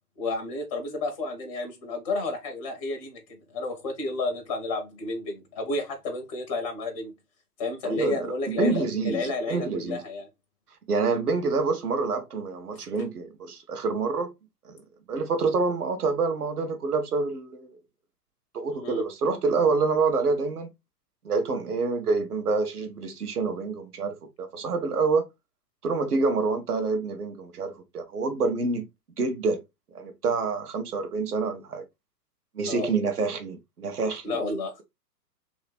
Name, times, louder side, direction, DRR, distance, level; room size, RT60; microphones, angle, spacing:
voice 1, 0.2-7.1 7.6-10.3 12.8-12.9 18.8-19.0 32.7-32.9 34.2-34.7, left 2 dB, 20° left, 0.5 m, -31 dB
voice 2, 7.8-10.0 10.9-14.3 14.6-14.8 15.1-17.8 18.5-20.7 21.2-25.2 25.8-28.9 29.2-29.6 29.9-31.8 32.5-34.4, right 4 dB, 65° right, 1.0 m, -27 dB
3.0 x 2.8 x 3.2 m
figure-of-eight pair, 120°, 49 cm